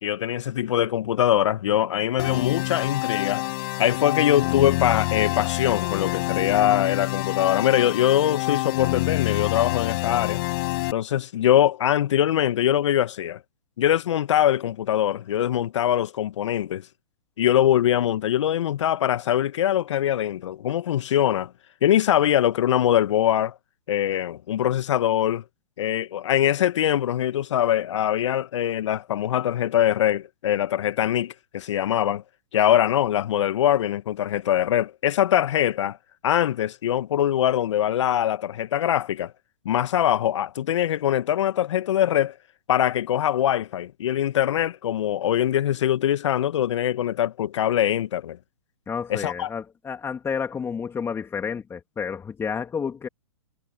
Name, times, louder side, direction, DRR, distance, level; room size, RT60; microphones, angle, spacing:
voice 1, 0.0-3.4 3.8-10.4 10.9-13.4 13.8-16.8 17.4-21.5 21.8-23.5 23.9-25.4 25.8-32.2 32.5-36.0 36.2-39.3 39.6-42.3 42.7-48.4 49.1-49.5, left 11 dB, 60° left, 1.3 m, -22 dB
sound 1, 2.2-10.9, left 22 dB, 45° left, 6.9 m, -27 dB
voice 2, 48.9-53.1, left 6 dB, 15° left, 2.8 m, -30 dB
hypercardioid pair, 120°, 17 cm